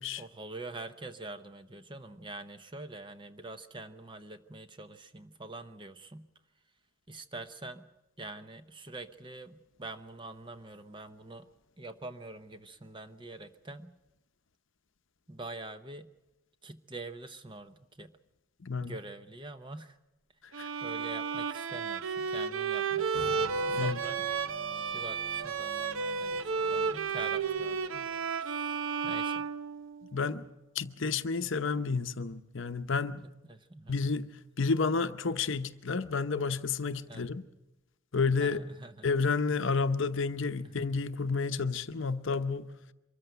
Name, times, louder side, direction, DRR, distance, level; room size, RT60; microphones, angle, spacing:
voice 1, 0.2-6.3 7.1-7.9 8.2-11.5 11.8-14.0 15.3-16.1 16.6-18.1 18.8-20.0 20.8-24.3 24.9-28.1 28.4-29.5 33.5-34.0 37.1-37.3 38.4-39.1 40.6-40.9, right 2 dB, 20° right, 0.8 m, -45 dB
voice 2, 18.6-18.9 20.6-20.7 23.7-24.0 30.1-30.5 30.7-33.2 33.9-34.3 34.6-37.4 38.1-38.6 39.0-42.7, left 4 dB, 60° left, 0.8 m, -30 dB
Bowed string instrument, 20.5-30.2, right 5 dB, 70° right, 0.8 m, -33 dB
sound 1, 23.1-28.3, right 3 dB, 50° right, 7.3 m, -47 dB
24.0 x 14.0 x 9.0 m
head